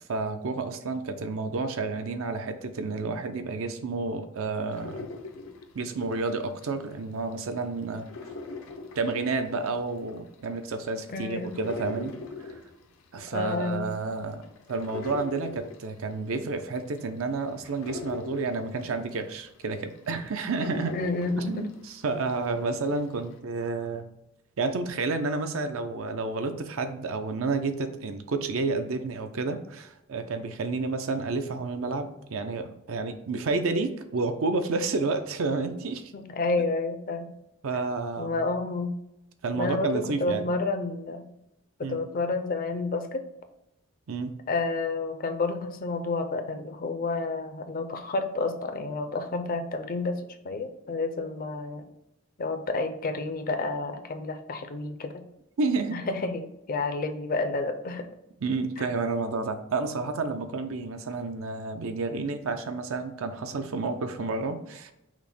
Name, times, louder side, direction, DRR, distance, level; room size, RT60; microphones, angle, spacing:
voice 1, 0.1-5.1 5.7-8.1 9.0-12.6 13.1-14.4 14.7-21.0 21.4-24.1 24.6-36.1 37.6-38.4 39.4-40.5 41.8-42.0 44.1-44.3 55.6-56.0 58.4-64.9, right 3 dB, 70° right, 8 dB, 0.5 m, -30 dB
sound 1, 4.7-7.0 7.3-22.5 22.8-23.4, left 3 dB, 80° left, 0.7 m, -41 dB
voice 2, 11.1-11.5 13.3-13.9 20.9-21.7 36.1-37.3 38.2-38.9 39.5-41.3 41.8-43.3 44.5-51.9 52.4-55.2 55.9-58.1 58.8-58.9, left 3 dB, 45° left, 7 dB, 0.5 m, -30 dB
5.8 x 2.1 x 4.2 m, 0.83 s
head